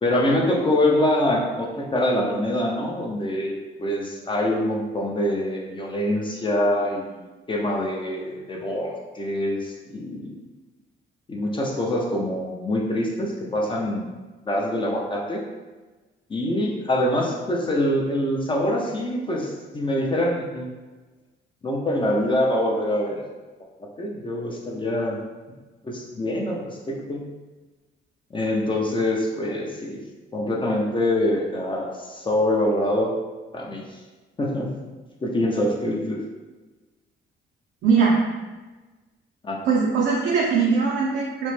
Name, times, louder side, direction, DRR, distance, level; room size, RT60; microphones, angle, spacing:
voice 1, 0.0-10.3 11.3-14.1 14.5-15.4 16.3-20.7 21.6-23.2 24.0-25.2 25.8-27.3 28.3-30.0 30.3-33.1 33.5-34.0 34.4-34.9 35.2-36.2 39.4-39.6, left 1 dB, 25° left, -2 dB, 0.5 m, -25 dB
voice 2, 37.8-38.2 39.7-41.5, right 5 dB, 70° right, -4 dB, 0.5 m, -20 dB
3.0 x 2.0 x 3.1 m, 1.2 s
cardioid pair, 90°, 20 cm